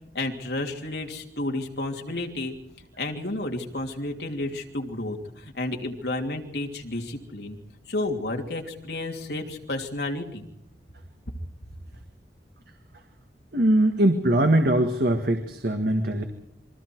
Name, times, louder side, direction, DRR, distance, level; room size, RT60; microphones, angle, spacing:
voice 1, 0.1-2.5 3.0-7.6 7.9-10.5, left 2 dB, 70° left, 2 dB, 3.0 m, -31 dB
voice 2, 13.5-16.2, right 1 dB, 60° right, 5 dB, 1.8 m, -21 dB
28.0 x 22.5 x 4.7 m, 0.80 s
head